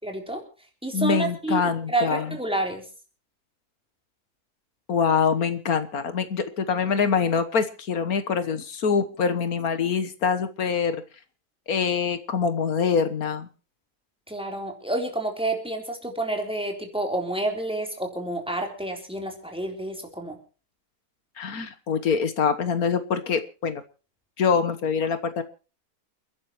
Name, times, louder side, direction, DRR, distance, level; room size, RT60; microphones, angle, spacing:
voice 1, 0.0-0.4 0.8-1.6 1.9-2.8 14.3-20.4, right 2 dB, 5° right, 2 dB, 3.7 m, -29 dB
voice 2, 0.9-2.4 4.9-11.0 11.7-13.5 21.4-23.8 24.4-25.4, left 6 dB, 70° left, 10 dB, 1.7 m, -24 dB
29.0 x 11.0 x 3.1 m, 0.36 s
omnidirectional pair, 1.6 m